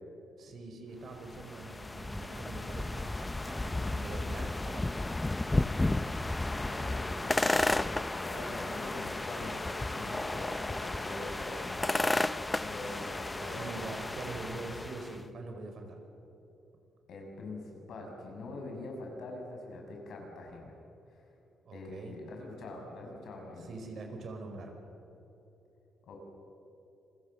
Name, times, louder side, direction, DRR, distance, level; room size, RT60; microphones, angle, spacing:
voice 1, 0.4-5.0 12.8-13.0 13.4-16.0 21.6-22.2 23.6-24.7, right 3 dB, 55° right, 4 dB, 5.0 m, -44 dB
sound 1, 1.1-15.2, left 2 dB, 15° left, 0.7 m, -33 dB
voice 2, 6.5-7.7 8.2-13.7 17.1-20.8 21.1-21.2 21.7-23.7 26.0-26.2, left 2 dB, 70° left, 1 dB, 6.5 m, -44 dB
28.5 x 21.5 x 6.8 m, 3.0 s
cardioid pair, 90°, 0 cm